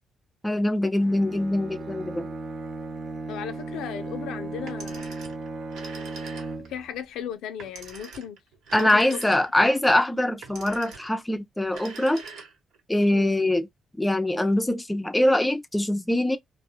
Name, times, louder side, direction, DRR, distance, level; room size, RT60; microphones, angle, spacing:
voice 1, 0.4-2.3 8.7-12.2 12.9-13.7 14.0-16.4, left 1 dB, 10° left, 0.4 m, -23 dB
Bowed string instrument, 1.0-7.0, right 3 dB, 45° right, 0.6 m, -36 dB
voice 2, 3.3-5.1 6.7-8.4 8.8-9.2 9.6-9.7 13.1-13.3, left 9 dB, 90° left, 0.4 m, -36 dB
Telephone, 4.6-6.8 7.6-9.7 10.4-11.2 11.6-12.8, right 5 dB, 80° right, 1.0 m, -43 dB
2.3 x 2.0 x 2.7 m
cardioid pair, 90°, 0 cm